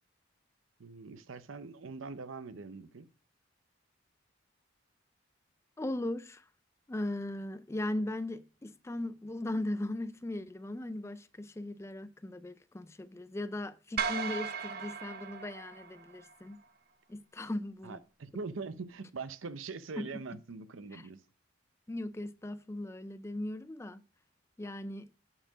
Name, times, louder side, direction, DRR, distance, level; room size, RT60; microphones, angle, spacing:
voice 1, 0.8-3.1 17.8-21.2, right 4 dB, 90° right, 0.6 m, -42 dB
voice 2, 5.8-6.4 6.9-16.6 17.1-18.0 20.0-20.1 20.9-21.0 21.9-24.0 24.6-25.1, left 1 dB, 15° left, 0.3 m, -38 dB
sound 1, 14.0-16.3, right 6 dB, 50° right, 0.6 m, -37 dB
8.8 x 4.5 x 5.0 m
head